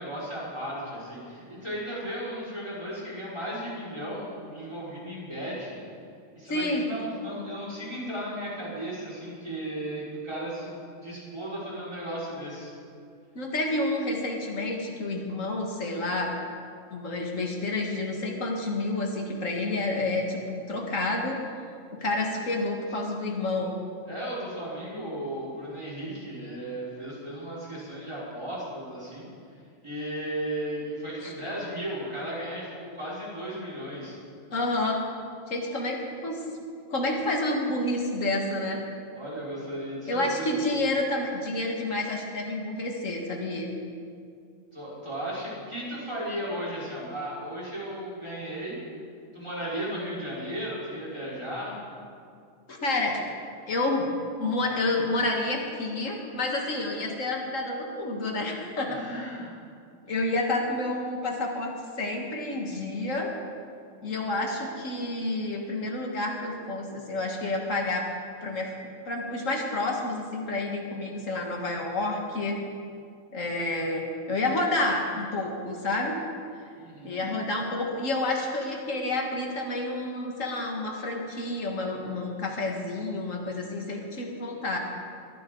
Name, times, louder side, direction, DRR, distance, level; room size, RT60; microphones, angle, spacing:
voice 1, 0.0-5.8 6.4-12.7 24.1-29.3 29.8-34.2 39.1-40.7 44.7-48.8 49.3-51.8 58.9-59.6 76.7-77.3, right 1 dB, 20° right, -7 dB, 5.2 m, -35 dB
voice 2, 6.5-6.9 13.4-16.3 16.9-21.4 22.0-23.7 31.2-31.3 34.5-35.0 35.5-36.4 36.9-38.8 40.1-43.7 52.7-53.2 53.7-54.1 54.4-59.3 60.1-63.3 64.0-68.1 68.4-68.7 69.1-72.6 73.3-76.2 77.0-84.8, left 2 dB, 85° left, 1 dB, 2.1 m, -29 dB
21.5 x 14.5 x 3.9 m, 2.3 s
omnidirectional pair, 1.3 m